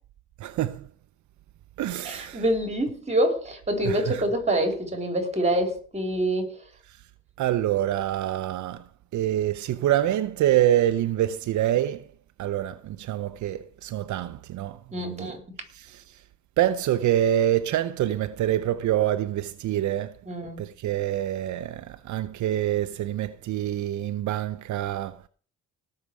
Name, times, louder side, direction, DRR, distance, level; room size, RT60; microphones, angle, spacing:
voice 1, 0.4-0.9 1.8-2.4 3.8-4.2 7.4-8.8 9.1-12.0 12.4-15.3 15.7-16.2 16.6-20.2 20.6-25.2, right 12 dB, 75° right, 0.8 m, -26 dB
voice 2, 2.0-6.5 14.9-15.4 20.3-20.6, right 1 dB, 20° right, 4.4 m, -26 dB
18.5 x 6.7 x 4.9 m
cardioid pair, 90°, 30 cm